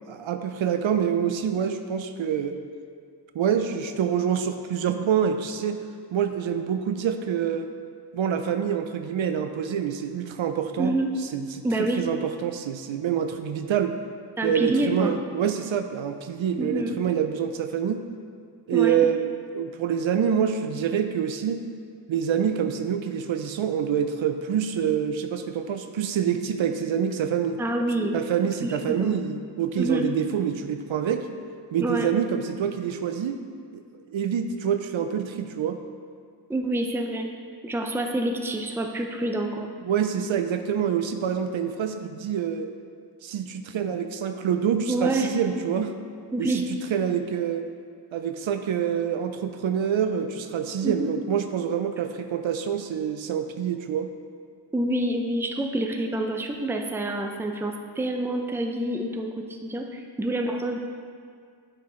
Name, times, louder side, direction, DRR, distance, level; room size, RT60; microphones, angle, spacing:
voice 1, 0.1-2.6 3.3-5.8 6.1-7.7 8.1-11.0 11.3-11.5 12.0-13.9 14.4-18.0 18.7-21.7 22.1-27.6 28.1-31.2 31.7-33.4 33.7-33.8 34.1-35.8 39.8-42.7 43.2-46.0 46.4-46.6 46.9-47.7 48.1-54.1, right 8 dB, 80° right, 8 dB, 0.5 m, -26 dB
voice 2, 10.8-11.1 11.6-12.0 14.4-15.1 16.6-17.0 18.7-19.0 27.6-28.2 28.6-29.2 29.8-30.1 31.8-32.1 36.5-37.3 37.6-39.7 44.9-45.3 46.3-46.6 50.8-51.1 54.7-60.8, right 1 dB, 5° right, 4 dB, 0.4 m, -27 dB
8.6 x 4.7 x 3.1 m, 2.2 s
wide cardioid pair, 90°, 46 cm